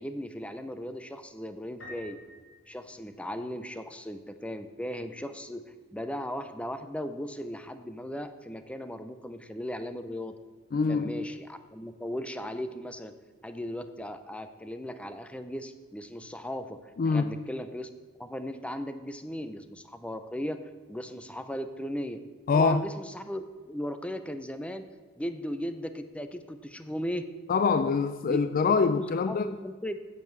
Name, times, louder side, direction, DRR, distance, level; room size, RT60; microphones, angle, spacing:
voice 1, 0.0-2.2 2.7-10.4 10.9-13.1 13.4-16.8 17.1-17.9 18.2-20.6 20.9-22.2 22.5-24.8 25.2-27.3 28.3-28.4 28.8-30.0, equal, 5° left, 0.6 m, -37 dB
Piano, 1.8-3.6, left 1 dB, 85° left, 2.9 m, -49 dB
voice 2, 10.7-11.2 17.0-17.4 22.5-22.9 27.5-29.5, left 4 dB, 45° left, 0.4 m, -25 dB
9.0 x 7.6 x 7.6 m
head